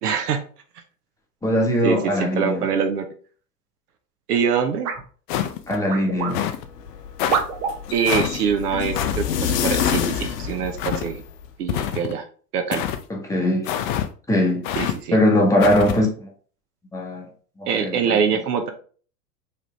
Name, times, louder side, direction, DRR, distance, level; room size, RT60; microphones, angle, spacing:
voice 1, 0.0-0.4 1.8-3.0 4.3-4.9 7.9-11.2 11.6-12.2 12.5-12.8 14.8-15.2 17.7-18.7, right 7 dB, 70° right, 0.9 m, -24 dB
voice 2, 1.4-2.7 5.7-6.5 13.1-13.7 14.3-14.7 15.1-16.3 16.9-17.3 17.6-18.2, left 1 dB, 5° left, 1.3 m, -21 dB
sound 1, 4.8-5.1 5.9-6.4 7.3-7.8 8.9-9.0 9.8-10.0, right 6 dB, 40° right, 0.8 m, -26 dB
sound 2, 5.3-5.8 6.3-6.6 7.2-7.4 8.1-8.4 8.9-9.2 9.8-10.1 10.8-11.1 11.7-12.2 12.7-13.0 13.6-14.1 14.6-15.0 15.6-16.0, left 10 dB, 35° left, 0.4 m, -26 dB
sound 3, 6.6-11.5, left 8 dB, 75° left, 0.7 m, -28 dB
4.8 x 3.4 x 3.1 m
figure-of-eight pair, 95°, 48 cm